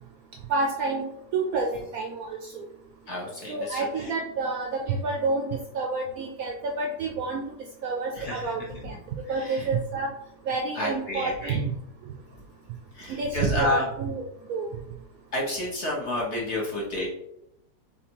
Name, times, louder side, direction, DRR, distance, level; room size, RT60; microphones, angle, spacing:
voice 1, 0.5-1.0 1.3-2.6 3.5-7.4 7.8-8.9 9.3-10.1 10.5-11.6 13.1-14.2 14.5-14.7, right 3 dB, 70° right, 1 dB, 0.9 m, -29 dB
voice 2, 3.1-4.1 8.1-8.8 9.3-9.7 10.7-11.6 12.9-13.8 15.3-17.1, left 2 dB, 50° left, -3 dB, 1.0 m, -30 dB
4.3 x 3.8 x 2.9 m, 0.81 s
omnidirectional pair, 1.9 m